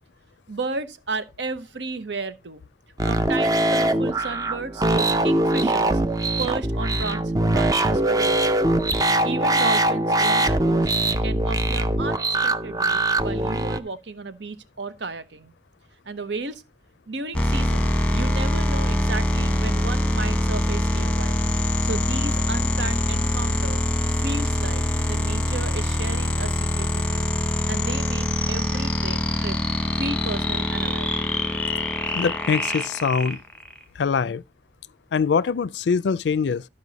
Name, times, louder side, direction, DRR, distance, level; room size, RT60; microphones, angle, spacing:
voice 1, 0.5-2.6 3.0-6.0 6.4-8.8 9.2-10.9 11.2-15.5 16.0-16.6 17.1-21.4 21.8-23.8 24.2-27.3 27.7-29.6 30.0-31.1, right 3 dB, 90° right, 0.8 m, -33 dB
sound 1, 3.0-13.8, right 1 dB, 20° right, 0.5 m, -22 dB
sound 2, 17.3-33.8, left 1 dB, 5° left, 1.0 m, -24 dB
voice 2, 32.1-33.4 34.0-34.4 35.1-36.7, left 5 dB, 85° left, 0.4 m, -23 dB
12.5 x 5.2 x 4.0 m
head